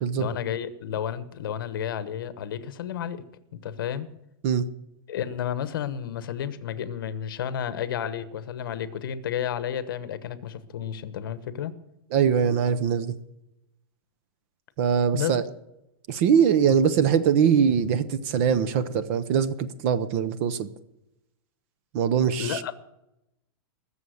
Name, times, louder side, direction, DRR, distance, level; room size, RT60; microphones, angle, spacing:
voice 1, 0.2-3.2 3.6-4.1 5.1-11.7 15.1-15.4 16.6-16.8 22.4-22.7, left 9 dB, 60° left, 13 dB, 1.1 m, -31 dB
voice 2, 12.1-13.1 14.8-15.4 16.1-20.7 21.9-22.6, right 7 dB, 35° right, 14 dB, 0.7 m, -22 dB
21.0 x 7.1 x 6.4 m, 0.87 s
supercardioid pair, 175°, 12 cm